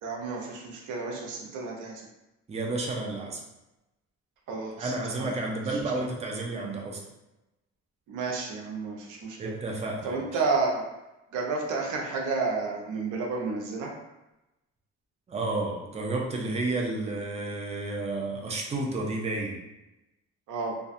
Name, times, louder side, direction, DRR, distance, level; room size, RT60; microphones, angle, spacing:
voice 1, 0.0-2.0 4.5-5.3 8.1-9.5 10.0-10.8 11.3-13.9 20.5-20.7, right 4 dB, 80° right, 0 dB, 0.6 m, -31 dB
voice 2, 2.5-3.4 4.8-7.0 9.4-10.4 15.3-19.6, right 2 dB, 20° right, -1 dB, 0.5 m, -31 dB
2.6 x 2.3 x 2.5 m, 0.96 s
cardioid pair, 90°, 30 cm